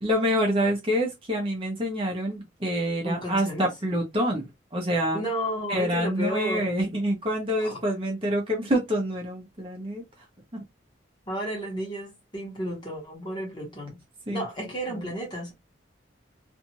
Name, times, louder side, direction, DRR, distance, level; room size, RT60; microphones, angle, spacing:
voice 1, 0.0-5.2 5.7-10.0 14.3-15.2, equal, 30° right, 0.8 m, -27 dB
voice 2, 3.0-3.7 5.1-6.8 7.6-7.8 11.3-14.0 14.3-15.5, equal, 25° left, 1.2 m, -32 dB
2.6 x 2.4 x 2.9 m
head